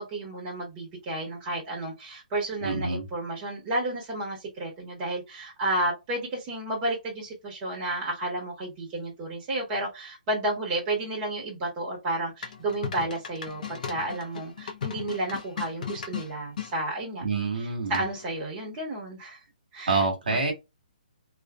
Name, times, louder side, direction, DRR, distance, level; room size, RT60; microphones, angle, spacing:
voice 1, 0.0-17.2 17.9-19.4 19.7-20.0 20.3-20.5, right 1 dB, 20° right, 1.2 m, -32 dB
voice 2, 2.6-3.1 17.2-18.0 19.9-20.5, right 3 dB, 75° right, 1.2 m, -27 dB
sound 1, 12.4-16.7 17.9-18.4, left 7 dB, 60° left, 0.6 m, -37 dB
2.6 x 2.4 x 2.2 m
hypercardioid pair, 160°, 5 cm